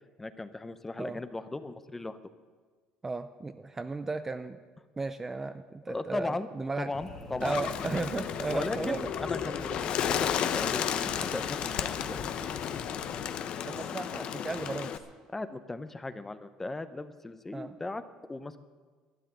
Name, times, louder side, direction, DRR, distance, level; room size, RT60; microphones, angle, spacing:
voice 1, 0.2-2.2 5.9-6.5 6.8-7.6 8.2-12.2 15.3-18.0 18.3-18.6, left 2 dB, 10° left, 12 dB, 0.8 m, -37 dB
voice 2, 3.0-4.6 5.0-6.9 7.4-9.1 13.6-15.0 17.5-17.8, right 3 dB, 15° right, 10 dB, 0.5 m, -35 dB
sound 1, 6.9-13.3, left 3 dB, 30° left, 1.8 m, -45 dB
Bird, 7.4-15.0, left 9 dB, 50° left, 0.9 m, -33 dB
12.5 x 10.0 x 9.3 m, 1.5 s
cardioid pair, 125°, 2 cm